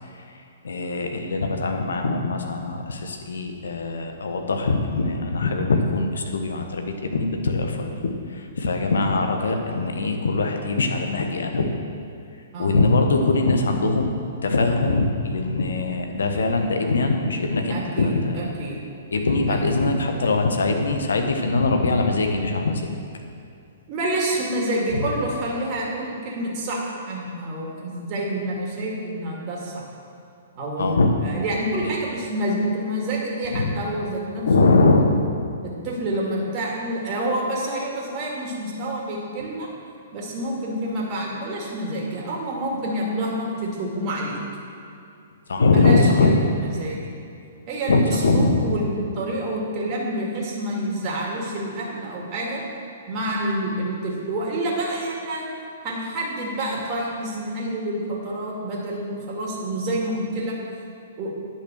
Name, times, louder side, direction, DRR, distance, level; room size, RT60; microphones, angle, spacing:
voice 1, 0.6-11.7 12.6-14.1 14.4-18.5 19.1-22.9 30.8-31.1 33.5-33.7 34.4-35.0 45.5-46.4 47.9-48.6, left 3 dB, 70° left, 4 dB, 1.2 m, -22 dB
voice 2, 17.7-18.8 19.5-19.9 23.9-29.8 30.6-34.9 35.6-39.7 40.1-44.4 45.6-47.0 47.7-52.6 53.1-55.4 55.8-60.6 61.2-61.3, right 1 dB, 35° right, -3 dB, 2.2 m, -28 dB
10.0 x 5.9 x 6.3 m, 2.5 s
figure-of-eight pair, 120°, 0 cm